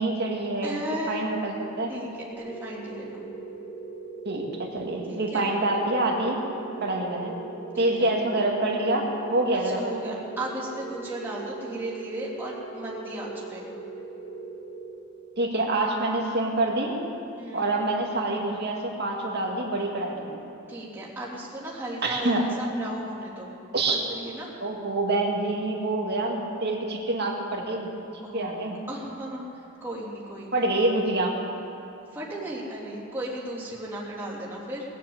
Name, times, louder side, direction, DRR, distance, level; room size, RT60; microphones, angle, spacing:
voice 1, 0.0-1.9 4.3-6.4 6.8-7.4 7.8-10.2 15.4-17.0 17.5-20.4 22.0-22.4 23.7-24.0 24.6-27.9 28.3-28.8 30.5-31.3, right 2 dB, 55° right, 0 dB, 2.1 m, -26 dB
voice 2, 0.6-1.3 1.9-2.1 2.4-3.3 5.1-5.5 7.7-8.1 9.6-13.7 17.4-17.7 20.7-23.5 23.9-24.5 28.2-28.6 28.9-30.6 32.1-34.8, right 1 dB, 10° right, -7 dB, 3.3 m, -36 dB
sound 1, 2.3-15.5, right 4 dB, 55° left, 2.7 m, -40 dB
20.0 x 7.6 x 8.0 m, 2.8 s
head